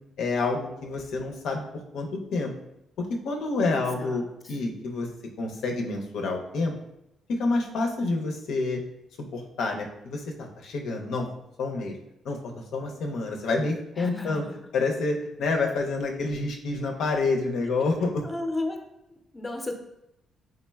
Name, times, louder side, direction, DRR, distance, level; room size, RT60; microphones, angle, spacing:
voice 1, 0.2-1.6 1.9-2.5 3.0-4.2 4.5-5.1 5.4-6.7 7.4-8.8 9.3-11.3 11.6-11.9 12.2-12.4 12.7-14.4 14.7-18.2, left 3 dB, 80° left, 2 dB, 0.5 m, -28 dB
voice 2, 3.6-4.6 14.0-14.6 18.2-18.8 19.1-19.7, left 2 dB, 20° left, 3 dB, 0.5 m, -34 dB
3.7 x 3.1 x 2.2 m, 0.84 s
cardioid pair, 90°, 0 cm